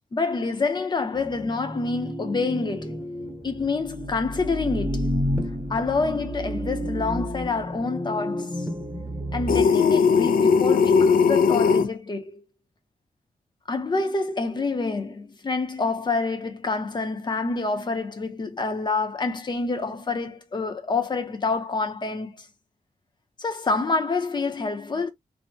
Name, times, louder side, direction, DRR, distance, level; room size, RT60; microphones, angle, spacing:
voice 1, 0.1-3.0 3.4-5.2 5.7-8.6 9.3-12.4 13.7-22.5 23.4-25.1, left 3 dB, 30° left, 0.6 m, -27 dB
sound 1, 1.2-9.6, equal, 15° right, 0.8 m, -31 dB
sound 2, 9.5-11.9, left 5 dB, 75° left, 0.4 m, -18 dB
2.7 x 2.1 x 3.3 m
wide cardioid pair, 160°, 15 cm